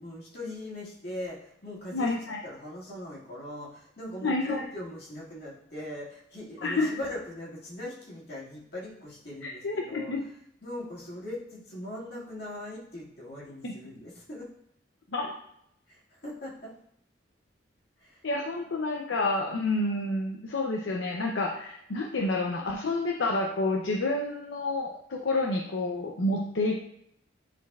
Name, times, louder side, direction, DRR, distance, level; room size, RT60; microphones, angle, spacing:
voice 1, 0.0-2.2 2.4-10.1 10.6-14.5 15.9-16.7 18.0-18.2, left 1 dB, 55° left, -5 dB, 2.1 m, -40 dB
voice 2, 1.9-2.4 4.2-4.6 6.6-6.9 9.4-10.2 13.6-13.7 15.1-15.4 18.2-26.8, left 2 dB, 80° left, 1 dB, 0.6 m, -29 dB
9.9 x 4.0 x 2.4 m, 0.74 s
head